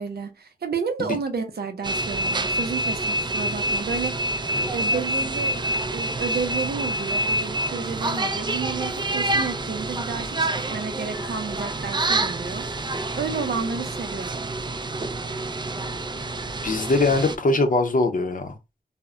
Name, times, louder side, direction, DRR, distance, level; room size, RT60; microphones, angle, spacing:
voice 1, 0.0-4.1 4.7-5.6 5.9-12.7 13.2-14.5, right 5 dB, 90° right, 0.5 m, -31 dB
sound 1, 1.8-17.4, right 1 dB, 30° right, 0.3 m, -27 dB
voice 2, 16.6-18.6, left 2 dB, 60° left, 0.6 m, -22 dB
2.1 x 2.1 x 3.6 m
cardioid pair, 50°, 16 cm